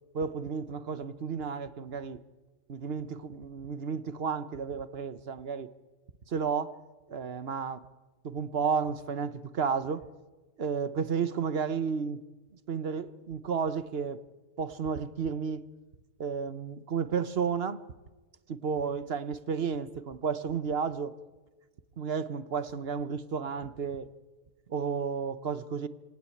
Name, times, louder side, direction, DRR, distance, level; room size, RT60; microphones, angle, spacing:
voice 1, 0.1-2.2 2.7-5.7 6.3-6.8 7.1-7.9 8.2-10.1 10.6-12.2 12.7-14.2 14.6-15.6 16.2-17.8 18.5-21.1 22.0-24.1 24.7-25.9, right 6 dB, 65° right, 14 dB, 1.2 m, -32 dB
27.0 x 18.0 x 8.6 m, 1.2 s
omnidirectional pair, 1.1 m